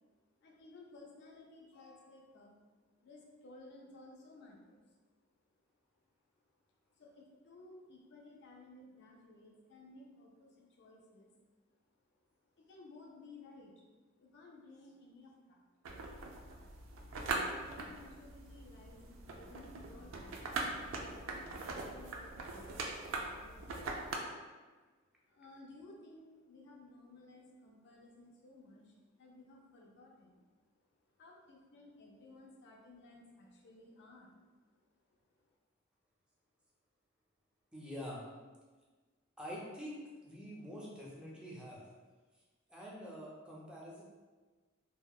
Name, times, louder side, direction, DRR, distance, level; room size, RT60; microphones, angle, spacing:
voice 1, 0.4-5.0 6.4-6.5 6.9-11.3 12.6-15.6 17.1-23.9 24.4-24.8 25.3-30.5 30.8-35.5, left 2 dB, 60° left, -1 dB, 0.4 m, -57 dB
sound 1, 15.8-24.2, right 3 dB, 75° right, 0.3 m, -42 dB
voice 2, 37.7-38.2 39.4-41.8 42.7-44.0, equal, 5° right, -5 dB, 0.4 m, -46 dB
2.7 x 2.0 x 2.2 m, 1.3 s
head